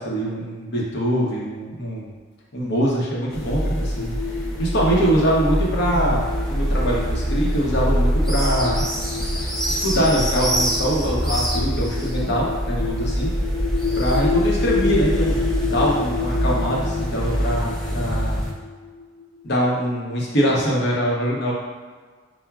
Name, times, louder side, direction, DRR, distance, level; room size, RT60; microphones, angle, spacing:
voice 1, 0.0-2.1 2.5-4.1 4.6-6.2 6.5-8.9 9.8-13.3 14.0-18.4 19.4-21.5, equal, 60° left, -4 dB, 0.8 m, -23 dB
sound 1, 3.3-19.6, left 5 dB, 80° left, 0.4 m, -30 dB
sound 2, 3.3-18.5, equal, 5° left, 0.5 m, -24 dB
5.7 x 2.1 x 2.3 m, 1.5 s
head